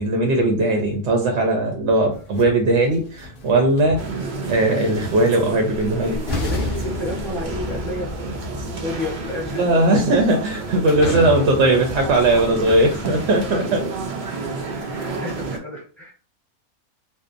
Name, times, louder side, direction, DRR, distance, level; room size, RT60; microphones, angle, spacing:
voice 1, 0.0-4.0 4.5-6.2 9.5-13.8, right 2 dB, 65° right, 2 dB, 0.7 m, -19 dB
sound 1, 2.1-4.5 5.7-5.8 6.3-13.7, left 2 dB, 60° left, 0.5 m, -32 dB
sound 2, 4.0-15.6, right 3 dB, 90° right, 0.4 m, -31 dB
voice 2, 6.1-10.0 11.0-11.2 12.4-12.8 13.5-13.9 14.7-16.1, left 2 dB, ahead, -5 dB, 0.9 m, -32 dB
2.7 x 2.1 x 2.5 m, 0.39 s
omnidirectional pair, 1.6 m